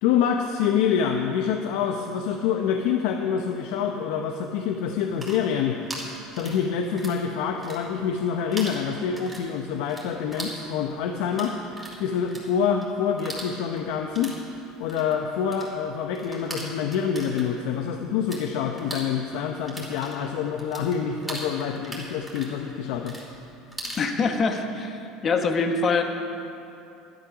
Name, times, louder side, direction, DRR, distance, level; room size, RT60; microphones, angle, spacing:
voice 1, 0.0-5.8 6.3-11.6 12.0-14.3 14.8-23.2, left 7 dB, 75° left, 3 dB, 0.8 m, -26 dB
sound 1, 5.1-7.2 7.5-8.2 8.5-18.4 18.7-24.1, right 1 dB, 5° right, 2.9 m, -39 dB
voice 2, 24.0-26.0, left 4 dB, 30° left, 5 dB, 1.1 m, -24 dB
12.0 x 12.0 x 6.0 m, 2.7 s
cardioid pair, 155°, 0 cm